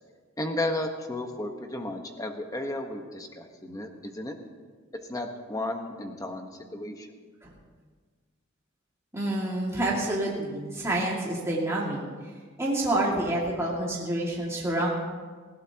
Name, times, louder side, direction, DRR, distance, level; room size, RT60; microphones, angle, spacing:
voice 1, 0.4-4.4 5.1-7.1, left 1 dB, 20° left, 4 dB, 1.2 m, -33 dB
voice 2, 9.1-12.0 12.6-14.9, right 1 dB, 15° right, -5 dB, 2.3 m, -28 dB
19.5 x 16.5 x 3.0 m, 1.5 s
head